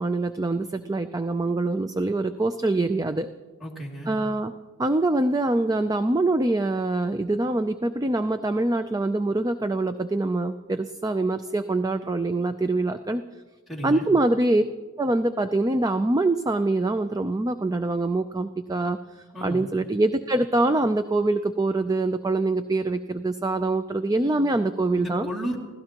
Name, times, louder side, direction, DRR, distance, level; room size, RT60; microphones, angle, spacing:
voice 1, 0.0-3.3 4.1-4.5 4.8-13.2 13.8-14.6 15.0-19.0 19.4-25.3, right 2 dB, 15° right, 9 dB, 0.4 m, -24 dB
voice 2, 3.6-4.1 13.7-14.1 19.3-19.7 24.9-25.6, equal, ahead, -4 dB, 2.5 m, -33 dB
29.5 x 16.0 x 2.9 m, 1.3 s
head